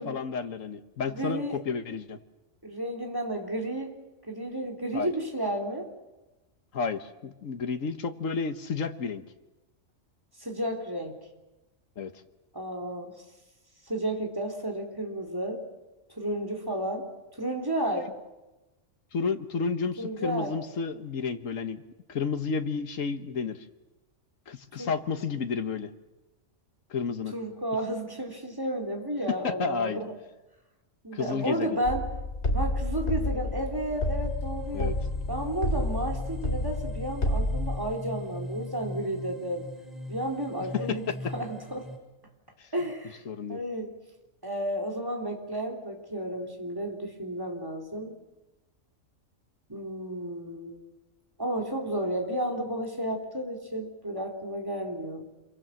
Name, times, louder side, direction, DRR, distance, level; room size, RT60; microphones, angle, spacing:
voice 1, 0.0-2.2 4.9-5.1 6.7-9.2 12.0-12.1 17.9-18.0 19.1-21.8 22.1-23.7 24.5-25.9 26.9-27.3 29.3-30.0 31.1-31.8 34.7-34.9 40.7-40.8 42.6-42.7 43.2-43.6, left 5 dB, 85° left, 8 dB, 1.7 m, -31 dB
voice 2, 1.1-1.6 2.6-4.0 4.3-5.9 10.4-11.2 12.5-13.2 13.9-15.6 16.1-17.1 17.4-18.1 20.0-20.6 24.8-24.9 27.3-30.1 31.0-32.1 32.5-34.9 35.3-39.7 40.1-41.0 41.3-41.9 42.7-43.2 43.5-43.9 44.4-48.1 49.7-50.8 51.4-55.3, right 1 dB, 15° right, 1 dB, 3.6 m, -32 dB
sound 1, 31.8-37.8, left 1 dB, 60° left, 2.9 m, -30 dB
sound 2, 33.5-42.0, left 1 dB, ahead, 5.9 m, -41 dB
27.0 x 23.5 x 7.6 m, 1.1 s
omnidirectional pair, 1.3 m